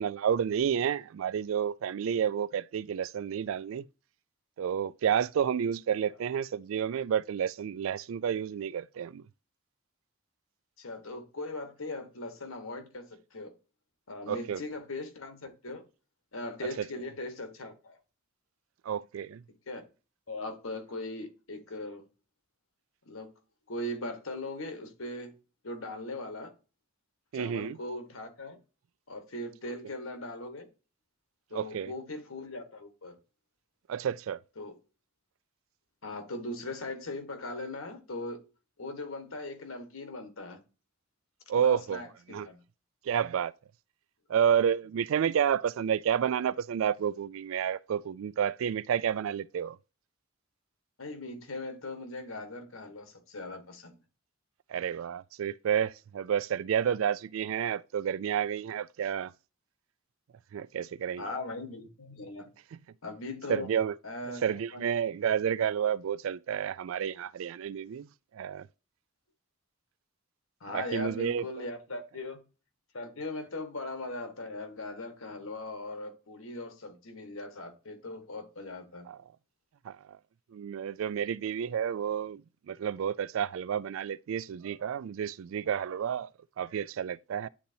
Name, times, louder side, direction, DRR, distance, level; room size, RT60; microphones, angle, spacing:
voice 1, 0.0-3.8 4.6-9.2 14.3-14.6 16.6-16.7 18.8-19.4 27.3-27.8 31.5-31.9 33.9-34.4 41.5-42.0 42.3-42.5 43.0-43.5 44.3-49.8 54.7-59.3 60.5-61.3 63.5-63.9 64.4-68.1 68.3-68.7 70.7-71.6 79.1-79.2 79.8-80.2 80.5-82.4 82.7-86.3 86.6-87.5, right 8 dB, 70° right, 0.3 m, -30 dB
voice 2, 10.8-13.5 14.1-15.8 16.3-18.0 19.7-19.8 20.3-22.0 23.1-23.3 23.7-25.3 25.6-26.5 27.3-28.6 29.1-30.7 31.5-33.2 34.6-34.8 36.0-38.4 38.8-40.6 41.5-42.6 51.0-54.0 61.2-62.5 63.0-63.7 64.0-64.8 70.6-72.4 72.9-79.1, left 2 dB, 75° left, 1.5 m, -39 dB
10.0 x 4.0 x 2.8 m
head